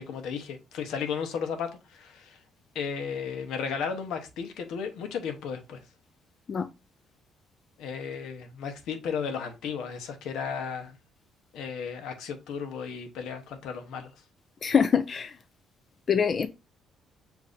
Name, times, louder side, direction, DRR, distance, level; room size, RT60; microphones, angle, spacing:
voice 1, 0.0-2.4 2.7-5.8 7.8-11.0 11.5-14.1, left 6 dB, 80° left, 0.9 m, -34 dB
voice 2, 14.6-15.3 16.1-16.5, left 7 dB, 40° left, 0.3 m, -24 dB
6.9 x 2.7 x 2.5 m
cardioid pair, 125°, 0 cm